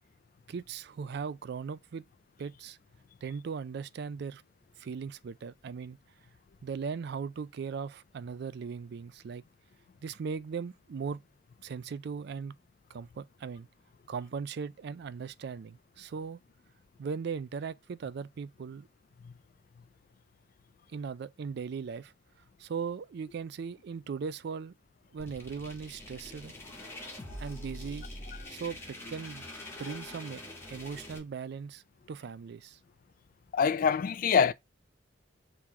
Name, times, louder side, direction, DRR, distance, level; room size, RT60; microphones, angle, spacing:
voice 1, 0.5-2.0 2.4-2.8 3.2-4.4 4.8-6.0 6.6-9.4 10.0-11.2 11.6-12.5 12.9-13.7 14.1-16.4 17.0-18.9 20.9-22.1 22.6-24.7 25.1-26.5 27.4-28.1 28.5-29.5 29.8-30.4 30.7-32.8, right 6 dB, 60° right, 0.3 m, -38 dB
sound 1, 25.2-31.2, left 1 dB, 15° left, 1.2 m, -44 dB
voice 2, 33.5-34.5, left 6 dB, 45° left, 0.3 m, -25 dB
3.8 x 2.9 x 4.6 m
head